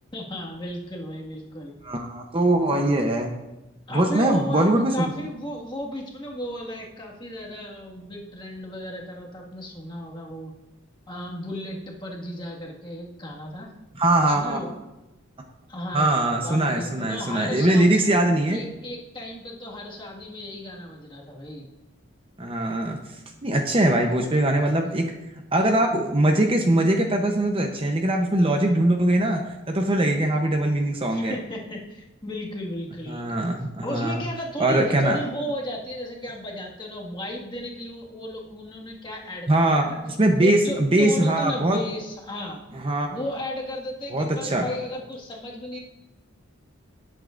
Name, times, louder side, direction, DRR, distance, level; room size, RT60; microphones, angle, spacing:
voice 1, 0.1-1.8 3.9-10.5 11.1-13.7 14.2-14.7 15.7-18.0 18.5-21.7 31.1-33.4 33.8-40.0 40.4-42.6 43.1-45.8, left 1 dB, 25° left, -2 dB, 1.8 m, -34 dB
voice 2, 1.8-3.3 3.9-5.1 13.9-14.6 15.9-18.6 22.4-23.0 23.4-25.1 25.5-29.4 29.7-31.4 33.1-34.2 34.6-35.2 39.5-41.8 42.7-43.2 44.1-44.7, right 1 dB, 25° right, 3 dB, 0.8 m, -21 dB
18.5 x 8.3 x 2.6 m, 1.0 s
head